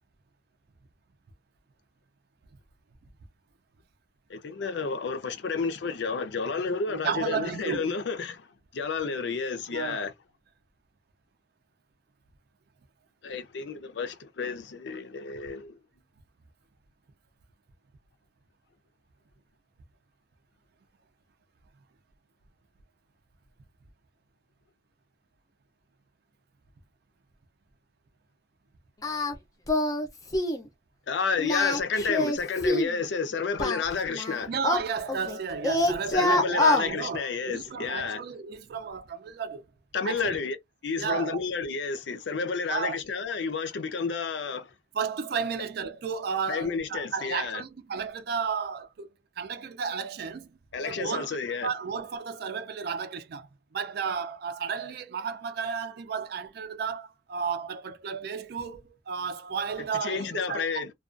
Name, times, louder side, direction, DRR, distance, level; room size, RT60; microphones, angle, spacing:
voice 1, 4.3-10.1 13.2-15.8 31.1-34.5 36.1-38.2 39.9-40.6 40.8-44.7 46.5-47.6 50.7-51.7 60.0-60.9, left 5 dB, 75° left, 0.5 m, -31 dB
voice 2, 6.9-7.9 9.7-10.1 34.5-39.6 40.0-40.4 41.0-41.4 42.7-43.0 44.9-49.1 49.4-50.5 50.8-53.5 53.7-60.6, right 6 dB, 60° right, 0.4 m, -33 dB
Singing, 29.0-29.3 29.7-30.1 30.3-30.6 31.4-33.0 33.6-35.4 35.6-36.9, left 2 dB, 20° left, 0.5 m, -25 dB
2.3 x 2.2 x 2.4 m
head